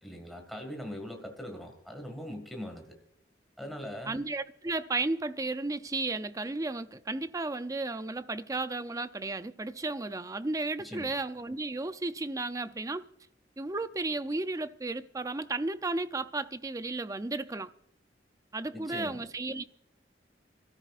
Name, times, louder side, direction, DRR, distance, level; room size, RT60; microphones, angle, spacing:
voice 1, 0.0-3.0 3.6-4.2 10.8-11.1 18.7-19.2, equal, ahead, 1.9 m, -41 dB
voice 2, 4.1-13.1 13.6-17.7 18.5-19.6, right 2 dB, 20° right, 0.5 m, -34 dB
25.5 x 13.5 x 2.5 m
head